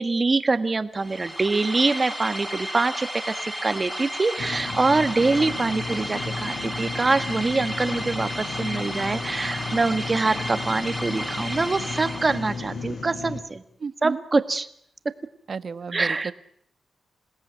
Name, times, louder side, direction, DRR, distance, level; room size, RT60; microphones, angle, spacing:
voice 1, 0.0-13.6 14.0-14.7 15.9-16.3, right 3 dB, 30° right, 10 dB, 1.6 m, -24 dB
sound 1, 1.0-12.8, equal, 5° left, 3.6 m, -33 dB
sound 2, 4.4-13.4, left 4 dB, 80° left, 6.7 m, -34 dB
voice 2, 13.8-14.2 15.5-16.3, right 5 dB, 50° right, 13 dB, 1.1 m, -32 dB
28.0 x 17.5 x 9.3 m, 0.71 s
wide cardioid pair, 115°, 0 cm